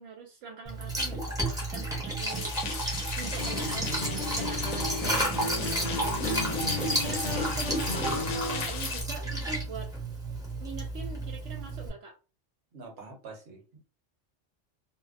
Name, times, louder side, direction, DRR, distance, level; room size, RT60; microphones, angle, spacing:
voice 1, 0.0-9.9 10.6-12.2, right 5 dB, 80° right, 0.9 m, -43 dB
Liquid, 0.7-11.9, right 1 dB, 5° right, 0.6 m, -32 dB
sound 1, 2.2-9.0, left 6 dB, 85° left, 0.9 m, -39 dB
Acoustic guitar, 3.4-8.8, left 3 dB, 55° left, 0.7 m, -35 dB
voice 2, 8.0-8.4 12.7-13.8, right 4 dB, 60° right, 1.1 m, -46 dB
2.6 x 2.1 x 2.4 m
omnidirectional pair, 1.2 m